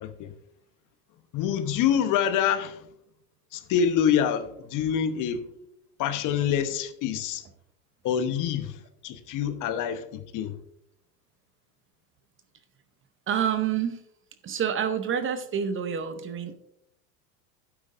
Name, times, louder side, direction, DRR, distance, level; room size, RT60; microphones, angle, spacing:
voice 1, 0.0-0.3 1.3-2.8 3.5-5.4 6.0-7.4 8.0-8.8 9.0-10.6, left 8 dB, 40° left, 1.0 m, -26 dB
voice 2, 13.3-14.0 14.4-16.6, right 8 dB, 25° right, 0.8 m, -28 dB
11.5 x 9.2 x 2.5 m
hypercardioid pair, 105°, 47 cm